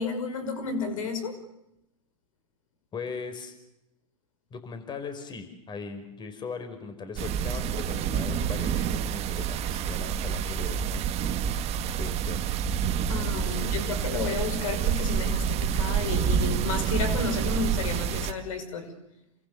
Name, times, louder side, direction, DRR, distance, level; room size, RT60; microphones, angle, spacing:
voice 1, 0.0-1.4 13.1-18.9, left 4 dB, 70° left, 8 dB, 5.8 m, -32 dB
voice 2, 2.9-3.5 4.5-10.9 11.9-12.5 13.1-13.6, left 5 dB, 25° left, 8 dB, 5.4 m, -39 dB
sound 1, 7.2-18.3, right 8 dB, 35° right, 1.9 m, -28 dB
29.0 x 25.5 x 7.0 m, 0.86 s
hypercardioid pair, 105°, 18 cm